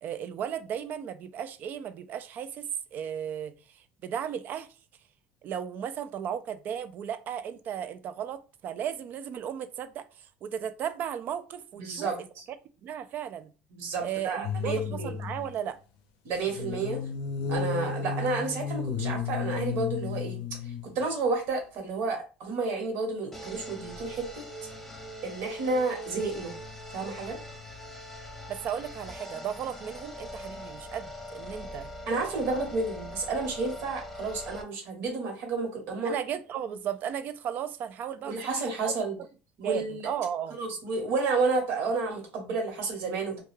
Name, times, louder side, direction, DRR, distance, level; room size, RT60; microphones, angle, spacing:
voice 1, 0.0-4.7 5.4-12.3 12.8-13.5 14.0-15.8 28.5-31.9 36.0-38.9 39.6-40.6, right 9 dB, 50° right, 0.3 m, -35 dB
voice 2, 11.8-12.4 13.7-15.1 16.2-17.0 17.5-20.4 20.9-24.4 25.2-26.5 26.9-27.4 32.1-36.1 38.2-39.2 39.6-40.1 40.6-43.4, right 3 dB, 65° right, 1.1 m, -31 dB
sound 1, 14.4-15.5 16.5-21.1 21.5-21.6, left 6 dB, 80° left, 0.5 m, -33 dB
sound 2, 23.3-34.6, equal, 5° left, 0.5 m, -42 dB
2.3 x 2.2 x 3.1 m
cardioid pair, 125°, 4 cm